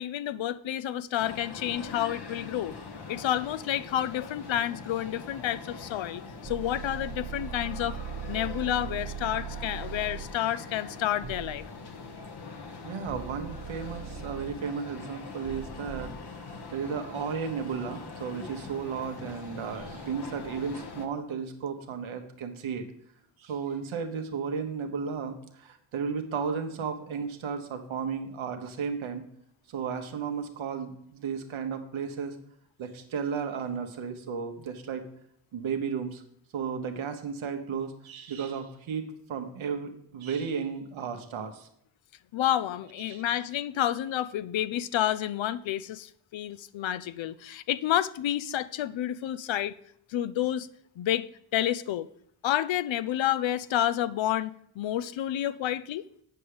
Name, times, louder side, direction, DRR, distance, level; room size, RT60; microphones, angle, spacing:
voice 1, 0.0-2.8 3.1-8.0 8.3-11.6 42.3-49.7 50.1-50.7 51.0-51.3 51.5-52.1 52.4-56.0, left 12 dB, 75° left, 0.6 m, -29 dB
sound 1, 1.2-21.1, left 4 dB, 55° left, 1.2 m, -43 dB
sound 2, 6.4-10.3 11.2-11.6 13.1-14.5 15.4-16.1, right 9 dB, 50° right, 1.2 m, -39 dB
voice 2, 12.8-22.8 23.4-29.2 29.7-32.3 32.8-35.1 35.5-36.2 36.5-41.7 43.1-43.2, right 6 dB, 90° right, 1.1 m, -34 dB
9.1 x 5.6 x 4.9 m
cardioid pair, 50°, 46 cm